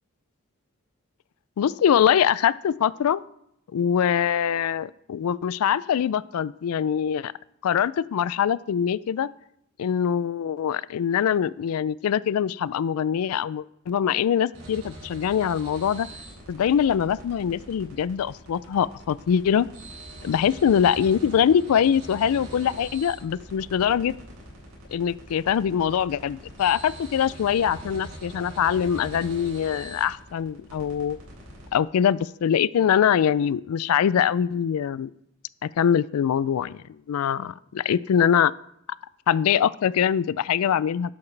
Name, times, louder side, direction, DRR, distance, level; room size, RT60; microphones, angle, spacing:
voice 1, 1.6-3.2 3.7-7.3 7.6-9.3 9.8-16.1 16.5-19.7 20.2-24.1 24.9-31.2 31.7-35.1 35.6-36.8 37.1-38.5 39.3-41.1, left 8 dB, 80° left, 19 dB, 0.3 m, -23 dB
sound 1, 14.5-31.7, right 1 dB, 85° right, 4.6 m, -43 dB
11.5 x 8.5 x 3.3 m, 0.76 s
head